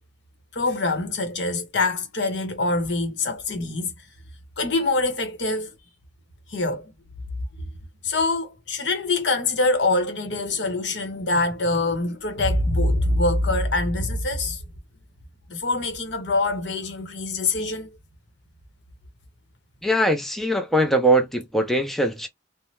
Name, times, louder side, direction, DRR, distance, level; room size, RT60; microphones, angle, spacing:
voice 1, 0.5-4.1 4.6-5.7 6.5-6.9 7.6-7.7 8.0-14.6 15.5-18.0, left 2 dB, 85° left, 0.9 m, -24 dB
voice 2, 19.8-22.3, right 1 dB, ahead, 0.4 m, -21 dB
2.7 x 2.1 x 3.1 m
head